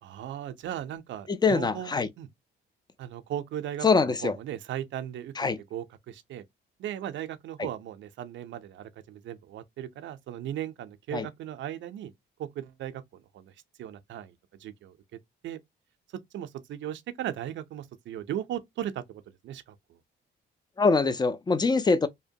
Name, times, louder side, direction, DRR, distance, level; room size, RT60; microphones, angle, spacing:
voice 1, 0.0-2.3 3.0-5.3 5.7-6.4 6.8-12.1 12.4-14.3 14.6-15.0 15.4-15.6 16.3-20.0, right 11 dB, 70° right, 0.5 m, -37 dB
voice 2, 1.3-2.1 3.8-4.3 5.4-5.6 11.1-11.3 20.8-22.1, left 4 dB, 20° left, 0.4 m, -23 dB
2.7 x 2.2 x 2.6 m
cardioid pair, 90°, 20 cm